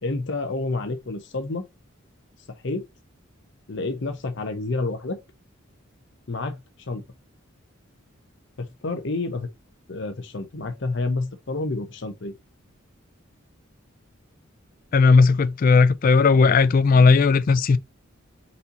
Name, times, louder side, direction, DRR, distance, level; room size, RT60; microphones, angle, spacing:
voice 1, 0.0-1.7 2.6-2.8 3.7-5.2 6.3-6.6 6.9-7.0 8.6-9.5 9.9-12.3, left 3 dB, 60° left, 0.7 m, -29 dB
voice 2, 14.9-17.8, left 4 dB, 40° left, 0.3 m, -16 dB
4.2 x 2.8 x 3.9 m
head